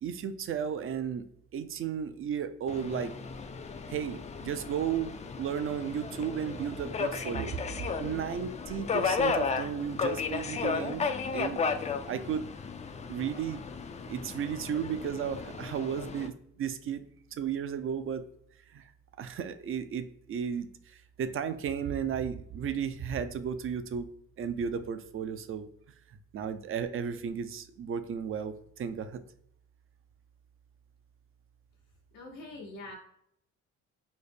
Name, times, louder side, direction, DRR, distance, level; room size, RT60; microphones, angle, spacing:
voice 1, 0.0-1.2 1.5-3.1 3.9-7.6 8.0-12.4 13.1-13.6 14.1-16.3 16.6-17.0 17.3-18.2 18.7-18.8 19.2-24.1 24.4-25.7 26.1-29.2, right 7 dB, 45° right, 11 dB, 0.4 m, -34 dB
Subway metro underground, 2.7-16.3, left 5 dB, 25° left, 0.3 m, -34 dB
voice 2, 32.1-32.9, left 2 dB, 85° left, -6 dB, 1.0 m, -44 dB
4.0 x 2.0 x 3.3 m, 0.71 s
cardioid pair, 90°, 30 cm